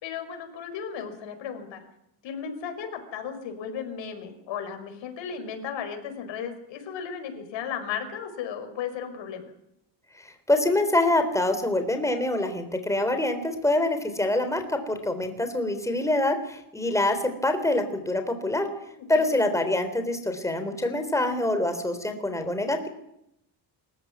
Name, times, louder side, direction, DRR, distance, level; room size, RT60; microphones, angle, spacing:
voice 1, 0.0-1.8 2.2-9.5 18.7-19.4, left 7 dB, 75° left, 7 dB, 5.4 m, -35 dB
voice 2, 10.2-18.7 19.1-22.9, left 1 dB, 5° left, 7 dB, 3.7 m, -25 dB
26.5 x 14.5 x 9.6 m, 0.79 s
cardioid pair, 155°, 45 cm